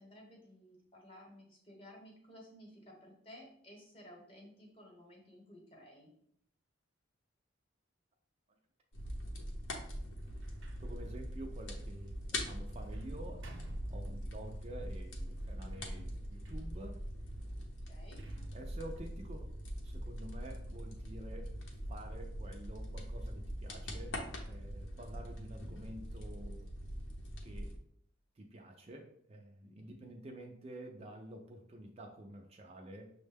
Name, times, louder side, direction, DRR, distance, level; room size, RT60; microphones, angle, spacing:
voice 1, 0.0-6.1 13.9-14.1 17.9-18.2 29.6-29.9, equal, 25° left, -1 dB, 1.0 m, -56 dB
sound 1, 8.9-27.8, equal, 70° left, 0.7 m, -42 dB
Sliding door, 10.1-14.6 15.3-20.1, right 2 dB, 70° right, 0.7 m, -59 dB
voice 2, 10.8-17.0 18.5-19.5 19.8-21.6 21.9-26.7 27.4-27.7 28.4-33.1, right 1 dB, 30° right, 2 dB, 0.4 m, -49 dB
6.2 x 2.1 x 3.3 m, 0.66 s
head